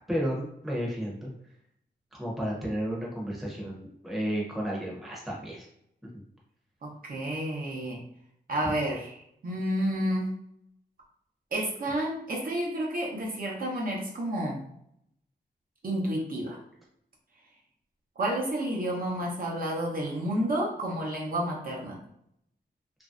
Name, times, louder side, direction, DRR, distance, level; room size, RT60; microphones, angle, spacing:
voice 1, 0.1-1.3 2.2-5.7, equal, ahead, -4 dB, 0.7 m, -32 dB
voice 2, 6.8-8.0 8.5-10.3 11.5-14.6 15.8-16.6 18.2-22.0, right 1 dB, 55° right, -2 dB, 0.7 m, -30 dB
3.0 x 2.6 x 2.4 m, 0.74 s
wide cardioid pair, 155°, 18 cm